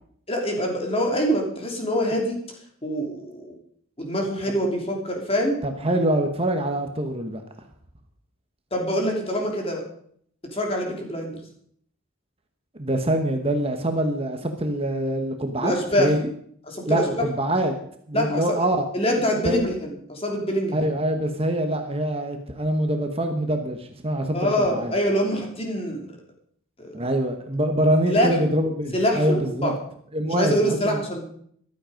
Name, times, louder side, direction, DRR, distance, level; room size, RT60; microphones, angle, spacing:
voice 1, 0.3-2.4 2.8-3.5 4.0-5.6 8.7-9.8 10.5-11.4 15.6-16.1 16.7-17.2 18.1-18.7 18.9-20.9 24.3-26.1 26.8-26.9 28.1-28.3 28.9-29.7 30.3-31.2, equal, 25° left, 1 dB, 3.1 m, -25 dB
voice 2, 5.6-7.4 12.8-16.2 16.9-17.7 18.1-18.9 19.4-19.6 20.7-24.9 26.9-29.7 30.1-31.0, right 1 dB, 25° right, 5 dB, 1.2 m, -24 dB
14.5 x 12.0 x 5.2 m, 0.64 s
head